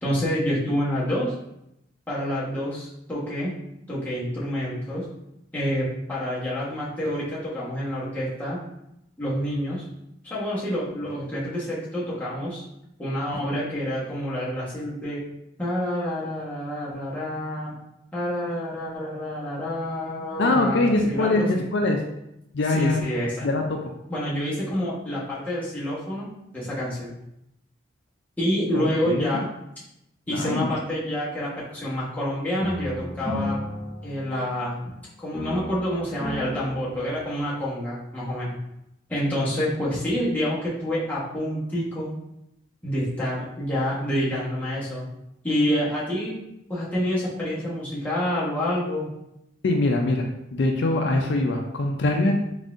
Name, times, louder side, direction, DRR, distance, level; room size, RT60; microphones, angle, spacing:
voice 1, 0.0-1.3 2.1-3.5 3.9-5.1 5.5-8.6 9.2-9.8 10.2-12.6 13.0-15.2 15.6-17.7 18.1-21.6 22.7-23.5 24.1-26.3 26.5-27.1 28.4-29.5 30.3-33.6 34.0-34.9 35.2-38.6 39.1-42.1 42.8-45.0 45.4-46.4 46.7-49.1, equal, 10° left, -8 dB, 1.1 m, -28 dB
voice 2, 20.4-22.0 22.5-23.0 23.4-23.8 28.7-29.4 30.3-30.7 49.6-52.4, left 2 dB, 65° left, 2 dB, 0.4 m, -23 dB
sound 1, 32.6-35.0 35.3-37.6, left 1 dB, 15° right, 0.7 m, -34 dB
3.9 x 3.6 x 2.5 m, 0.83 s
head